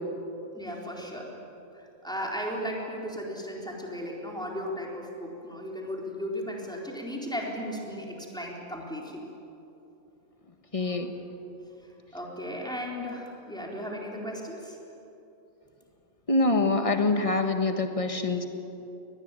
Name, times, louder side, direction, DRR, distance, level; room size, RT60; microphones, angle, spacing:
voice 1, 0.5-1.4 1.7-9.2 12.1-14.8, equal, 5° left, -2 dB, 4.1 m, -36 dB
voice 2, 10.7-11.1 16.3-18.4, left 2 dB, 25° left, 6 dB, 1.6 m, -25 dB
23.5 x 19.5 x 9.1 m, 2.9 s
omnidirectional pair, 1.4 m